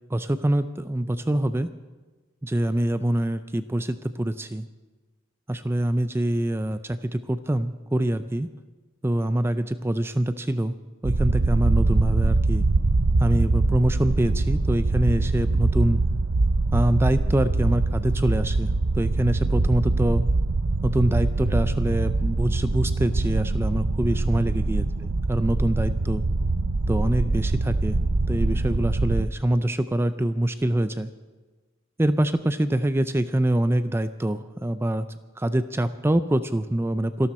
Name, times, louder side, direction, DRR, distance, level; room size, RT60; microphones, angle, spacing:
voice 1, 0.1-1.7 2.4-4.7 5.5-8.5 9.0-10.7 11.0-12.7 13.2-16.0 16.7-20.2 20.8-24.9 25.3-26.2 26.9-28.0 28.3-31.1 32.0-35.1 35.4-37.3, right 1 dB, 10° right, 11 dB, 0.4 m, -24 dB
sound 1, 11.0-29.3, right 2 dB, 90° right, 0.7 m, -23 dB
26.5 x 12.0 x 4.3 m, 1.3 s
head